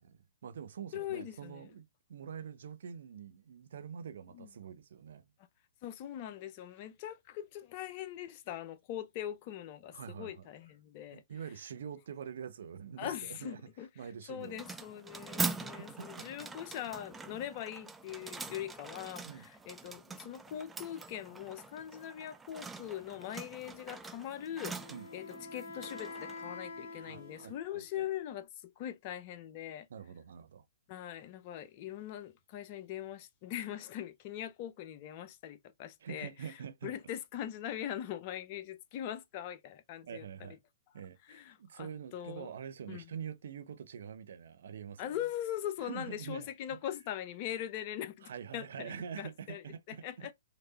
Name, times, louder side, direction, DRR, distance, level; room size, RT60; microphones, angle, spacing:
voice 1, 0.0-5.2 9.9-10.5 11.1-13.7 14.0-14.6 15.7-16.5 19.2-19.5 24.9-25.1 27.0-28.1 29.9-30.6 36.0-36.9 40.0-40.6 40.9-45.2 45.8-46.5 48.2-50.3, right 7 dB, 70° right, 0.7 m, -45 dB
voice 2, 0.9-1.7 4.3-4.5 5.8-11.2 13.0-13.9 14.3-24.8 25.1-29.9 30.9-36.6 36.8-40.3 41.3-42.5 42.9-43.0 45.0-49.6 49.9-50.3, left 11 dB, 40° left, 0.8 m, -41 dB
sound 1, 14.4-27.5, right 4 dB, 10° right, 0.5 m, -43 dB
Wind instrument woodwind instrument, 24.4-28.0, left 4 dB, 70° left, 1.6 m, -47 dB
4.0 x 3.3 x 4.0 m
hypercardioid pair, 130°, 0 cm